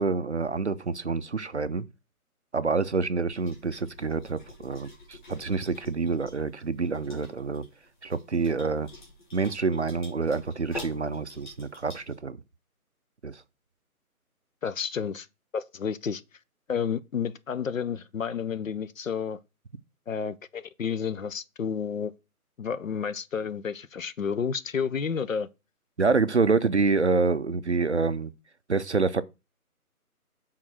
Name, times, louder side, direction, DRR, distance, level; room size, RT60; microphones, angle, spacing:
voice 1, 0.0-1.9 2.5-7.6 8.0-8.9 9.3-12.4 13.2-13.4 26.0-28.3 28.7-29.2, right 4 dB, 50° right, 0.4 m, -27 dB
sound 1, 3.3-12.2, left 2 dB, 30° left, 3.2 m, -47 dB
voice 2, 14.6-15.3 15.5-16.2 16.7-19.4 20.1-22.1 22.6-25.5, left 6 dB, 60° left, 0.7 m, -31 dB
6.5 x 3.7 x 6.0 m
hypercardioid pair, 170°, 45 cm